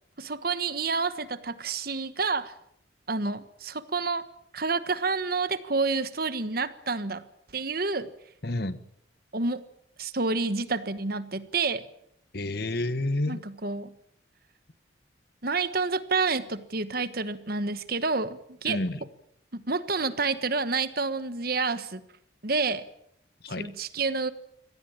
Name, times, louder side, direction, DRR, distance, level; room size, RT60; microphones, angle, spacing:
voice 1, 0.2-2.5 3.1-4.2 4.5-7.2 7.5-8.1 9.3-9.6 10.0-11.8 13.3-13.9 15.4-18.8 19.5-22.0 22.4-22.8 23.5-24.3, right 4 dB, 50° right, 13 dB, 1.4 m, -29 dB
voice 2, 8.4-8.8 12.3-13.4 18.7-19.0 23.4-23.7, left 1 dB, 55° left, 14 dB, 1.4 m, -29 dB
24.5 x 18.0 x 8.9 m, 0.74 s
head